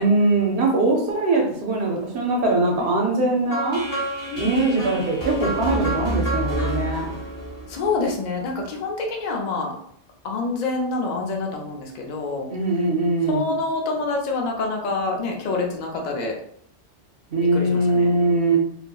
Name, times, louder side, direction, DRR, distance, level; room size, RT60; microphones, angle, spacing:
voice 1, 0.0-3.9 4.3-7.1 12.5-13.5 17.3-18.6, right 2 dB, 75° right, 0 dB, 0.8 m, -21 dB
sound 1, 3.5-8.5, right 1 dB, 20° left, 0.8 m, -28 dB
voice 2, 4.3-5.0 7.7-9.7 10.2-12.5 13.3-16.3 17.4-18.1, left 3 dB, 55° left, 0 dB, 0.5 m, -27 dB
2.8 x 2.5 x 2.2 m, 0.67 s
omnidirectional pair, 1.1 m